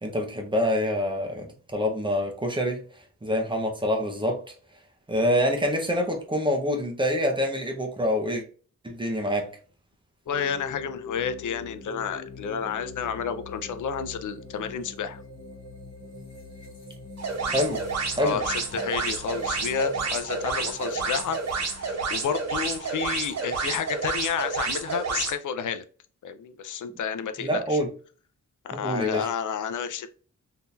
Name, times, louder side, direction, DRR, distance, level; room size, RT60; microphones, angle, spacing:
voice 1, 0.0-2.8 3.2-4.4 5.1-8.4 8.8-9.5 17.5-17.8 18.2-18.4 27.4-27.9 28.7-29.3, equal, 15° right, 0.7 m, -26 dB
sound 1, 10.2-23.8, left 4 dB, 45° left, 1.7 m, -44 dB
voice 2, 10.3-15.2 18.2-25.8 26.2-27.8 28.6-30.1, left 7 dB, 90° left, 0.5 m, -31 dB
sound 2, 17.2-25.3, right 4 dB, 60° right, 0.9 m, -30 dB
3.6 x 2.8 x 2.4 m
wide cardioid pair, 150°, 30 cm